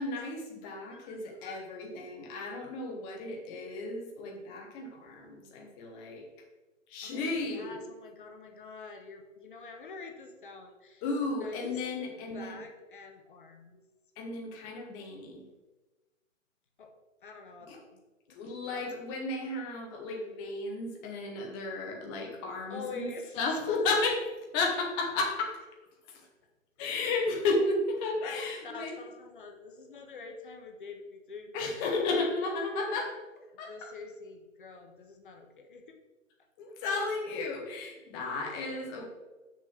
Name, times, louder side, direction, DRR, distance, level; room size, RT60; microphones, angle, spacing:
voice 1, 0.0-6.3 6.9-7.8 11.0-12.6 14.2-15.4 17.7-17.8 18.3-23.1 23.3-24.2 24.5-25.6 26.1-26.3 26.8-29.0 31.5-33.2 33.6-33.9 36.6-39.1, left 3 dB, 10° left, 1 dB, 0.7 m, -33 dB
voice 2, 0.9-1.6 7.0-12.1 12.3-13.8 16.8-16.9 17.2-18.0 18.3-18.4 18.7-18.9 22.7-24.0 26.8-27.0 28.6-32.1 32.9-33.1 33.5-36.0 38.3-38.5 38.8-39.1, left 4 dB, 40° left, 4 dB, 1.1 m, -46 dB
6.4 x 6.2 x 5.8 m, 1.1 s
figure-of-eight pair, 135°, 40 cm